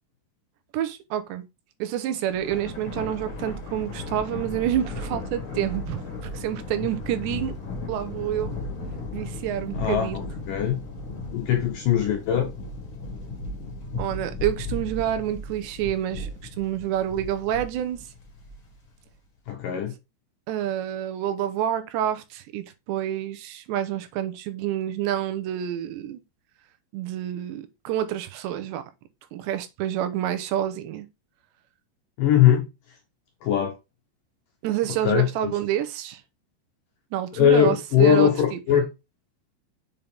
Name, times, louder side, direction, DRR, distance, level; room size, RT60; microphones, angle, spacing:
voice 1, 0.7-1.4 1.8-6.0 6.3-7.6 7.9-8.6 9.1-10.2 14.0-16.3 16.6-18.1 20.5-26.2 26.9-28.8 29.3-31.1 34.6-36.2 37.1-38.3, right 11 dB, 80° right, 3.1 m, -28 dB
Thunder, 2.3-18.9, left 2 dB, 35° left, 2.4 m, -35 dB
voice 2, 9.7-10.2 10.5-10.8 11.3-12.5 19.5-19.9 32.2-32.7 33.4-33.8 35.0-35.6 37.4-38.9, left 10 dB, 70° left, 2.1 m, -21 dB
7.2 x 5.6 x 3.4 m
omnidirectional pair, 5.1 m